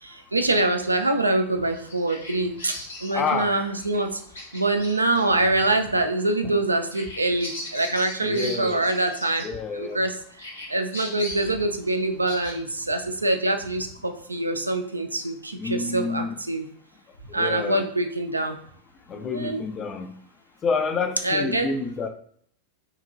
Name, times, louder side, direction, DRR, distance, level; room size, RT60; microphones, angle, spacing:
voice 1, 0.0-2.8 3.0-4.2 4.5-9.5 9.7-10.2 10.7-16.6 17.3-18.6 19.1-19.6 21.2-21.7, right 2 dB, 80° right, 6 dB, 0.3 m, -25 dB
Bird vocalization bird call bird song, 1.6-10.0 10.4-12.5, left 1 dB, 70° left, 1.2 m, -39 dB
voice 2, 3.1-3.5 8.2-8.9 9.4-10.0 15.6-16.4 17.3-17.9 19.1-20.1 20.6-22.1, left 4 dB, 25° left, 6 dB, 0.3 m, -28 dB
2.9 x 2.8 x 2.5 m, 0.63 s
figure-of-eight pair, 90°, 0 cm